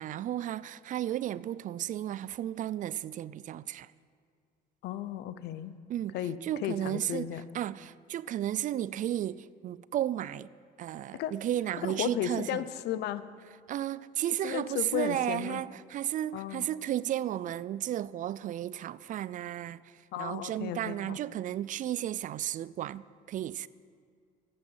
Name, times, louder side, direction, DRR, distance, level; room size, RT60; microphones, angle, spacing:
voice 1, 0.0-3.9 5.9-6.1 6.4-10.5 10.8-12.6 13.7-23.7, right 12 dB, 50° right, 0.4 m, -34 dB
voice 2, 4.8-5.7 6.1-6.4 6.6-7.4 11.1-11.3 11.8-13.2 14.4-15.6 16.3-16.7 20.1-21.2, left 11 dB, 80° left, 0.7 m, -34 dB
12.5 x 8.7 x 8.0 m
cardioid pair, 110°, 17 cm